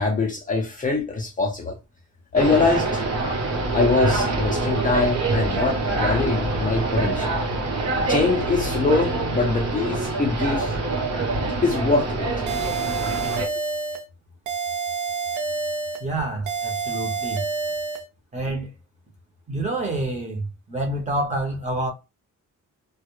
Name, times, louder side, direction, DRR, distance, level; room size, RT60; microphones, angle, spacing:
voice 1, 0.0-1.8 2.3-3.0 3.7-7.3 8.1-10.7 11.6-12.5, left 3 dB, 25° left, 0.4 m, -23 dB
sound 1, 2.3-13.4, right 2 dB, 55° right, 0.9 m, -25 dB
sound 2, 12.5-14.0 14.5-16.0 16.5-18.0, right 5 dB, 70° right, 0.5 m, -28 dB
voice 2, 16.0-17.5 18.3-18.7 19.5-21.9, right 2 dB, 20° right, 0.7 m, -27 dB
2.2 x 2.0 x 3.0 m
cardioid pair, 140°, 32 cm